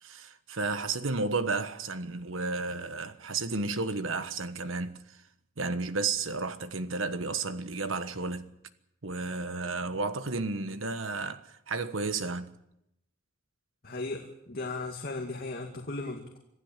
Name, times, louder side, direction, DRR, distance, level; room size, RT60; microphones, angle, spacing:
voice 1, 0.0-5.0 5.6-8.5 9.0-12.5, right 3 dB, 80° right, 1.4 m, -32 dB
voice 2, 13.8-16.4, left 2 dB, 50° left, 2.3 m, -36 dB
26.0 x 15.5 x 7.5 m
head